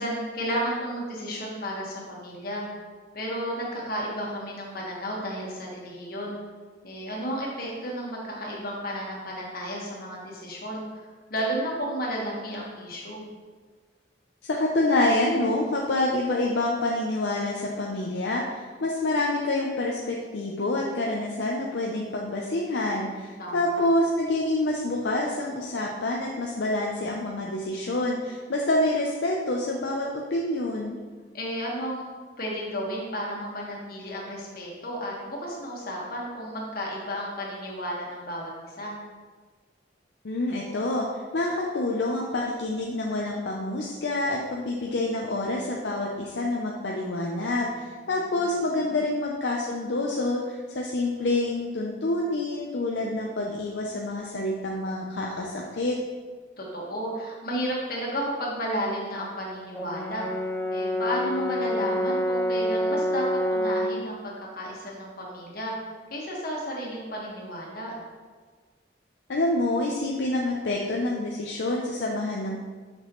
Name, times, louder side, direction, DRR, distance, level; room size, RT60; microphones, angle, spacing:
voice 1, 0.0-2.6 3.1-6.4 6.8-11.0 11.3-13.2 23.4-23.8 31.3-32.0 32.4-38.5 38.8-39.0 48.0-48.4 48.7-49.0 56.6-60.2 60.7-64.2 64.5-65.7 66.1-67.9, equal, 55° left, -3 dB, 1.6 m, -32 dB
voice 2, 14.4-31.0 40.2-41.1 41.3-56.0 69.3-72.6, left 2 dB, 75° left, -1 dB, 0.6 m, -27 dB
Brass instrument, 59.7-64.0, equal, 15° left, 0.4 m, -27 dB
6.4 x 6.2 x 3.1 m, 1.5 s
head